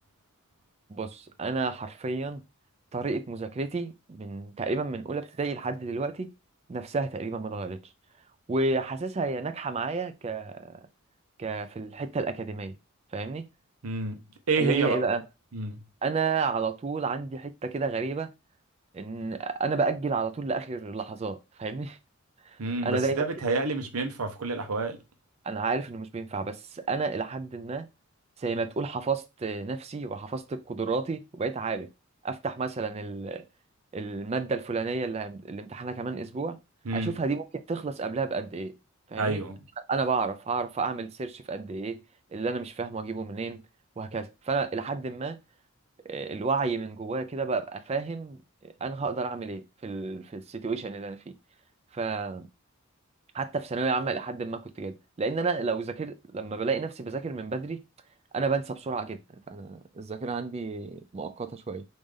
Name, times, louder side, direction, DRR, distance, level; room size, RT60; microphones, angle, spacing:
voice 1, 0.9-2.4 2.9-6.3 6.7-7.9 8.5-10.9 11.4-12.7 13.1-13.4 14.6-15.2 16.0-18.3 18.9-22.0 22.5-23.3 25.4-27.9 28.4-31.9 32.2-33.4 33.9-36.6 36.9-38.8 39.1-39.4 39.9-42.0 42.3-43.6 44.0-45.4 46.0-51.4 51.9-52.5 53.3-57.8 58.3-59.2 59.5-61.8, right 4 dB, 30° right, 0.3 m, -31 dB
voice 2, 13.8-14.2 14.5-15.0 15.5-15.8 22.6-25.0 36.9-37.1 39.2-39.6, right 3 dB, 85° right, 0.8 m, -28 dB
3.2 x 2.6 x 3.6 m
head